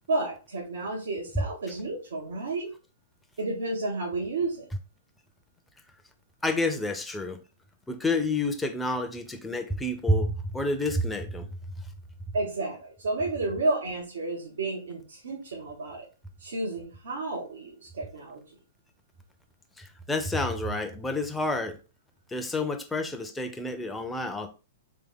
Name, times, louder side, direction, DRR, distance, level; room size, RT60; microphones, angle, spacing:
voice 1, 0.1-2.7 3.4-4.7 12.3-16.0 16.4-18.4, right 2 dB, 90° right, 1.4 m, -31 dB
voice 2, 6.4-7.4 7.9-11.5 19.8-21.8 22.3-24.5, left 2 dB, 5° left, 0.6 m, -29 dB
3.5 x 3.3 x 3.6 m
hypercardioid pair, 140°, 0 cm